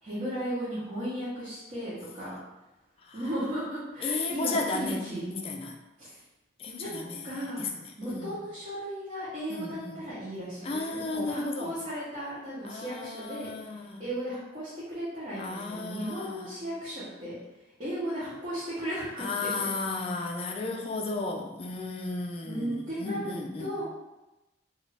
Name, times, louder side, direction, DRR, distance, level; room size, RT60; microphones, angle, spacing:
voice 1, 0.0-2.4 3.1-5.3 6.0-6.2 6.8-7.7 8.0-19.7 22.4-23.8, equal, 45° right, -11 dB, 0.8 m, -36 dB
voice 2, 4.0-5.0 5.3-5.8 6.6-7.7 8.0-8.4 9.5-10.0 10.6-11.7 12.6-14.0 15.4-16.6 19.2-23.8, left 3 dB, 35° left, 2 dB, 0.3 m, -34 dB
2.5 x 2.3 x 3.2 m, 1.0 s
head